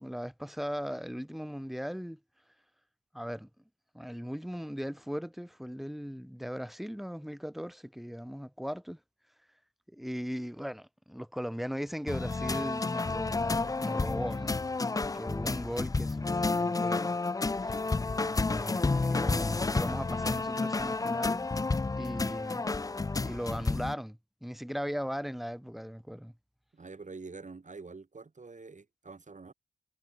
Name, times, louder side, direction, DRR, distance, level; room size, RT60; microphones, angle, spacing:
voice 1, 0.0-2.2 3.1-3.5 3.9-9.0 9.9-14.6 15.0-17.2 18.5-21.5 21.9-22.9 23.2-26.3, equal, ahead, 1.1 m, -38 dB
sound 1, 12.1-23.9, left 3 dB, 20° left, 0.4 m, -30 dB
voice 2, 20.8-21.3 26.7-29.5, right 4 dB, 50° right, 3.1 m, -47 dB
cardioid pair, 50°, 17 cm